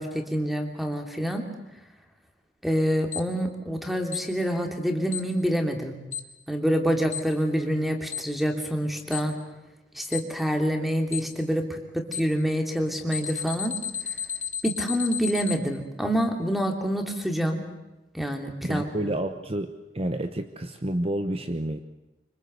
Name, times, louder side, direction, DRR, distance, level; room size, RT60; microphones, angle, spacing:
voice 1, 0.0-1.5 2.6-5.9 6.5-9.4 9.9-13.7 14.6-17.6 18.1-18.8, equal, ahead, 4 dB, 2.9 m, -27 dB
Alarm, 3.1-3.2 4.1-4.2 5.1-5.2 6.1-6.2 7.1-7.2 8.1-8.2 9.1-9.2 10.1-10.2 11.1-11.2 12.1-12.2 13.1-15.5, left 8 dB, 40° left, 2.7 m, -31 dB
voice 2, 18.6-21.8, right 1 dB, 35° right, 8 dB, 1.0 m, -29 dB
25.5 x 25.0 x 8.0 m, 1.0 s
head